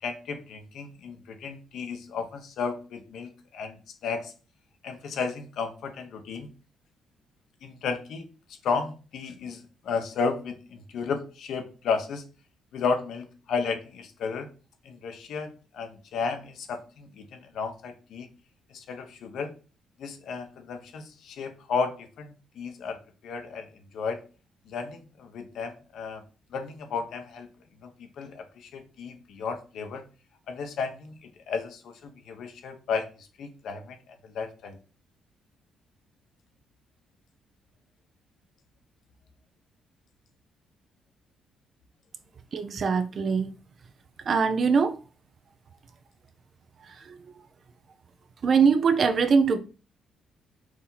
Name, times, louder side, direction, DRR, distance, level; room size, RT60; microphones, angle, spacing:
voice 1, 0.0-4.3 4.8-6.5 7.6-8.3 8.6-12.2 12.7-14.5 14.8-18.3 18.7-19.5 20.0-23.0 23.2-24.2 24.7-26.2 26.5-27.5 27.8-30.0 30.5-34.8, left 5 dB, 75° left, 0.9 m, -33 dB
voice 2, 42.5-43.5 44.3-44.9 48.4-49.6, right 5 dB, 50° right, 0.7 m, -22 dB
4.6 x 2.9 x 3.9 m
cardioid pair, 90°, 0 cm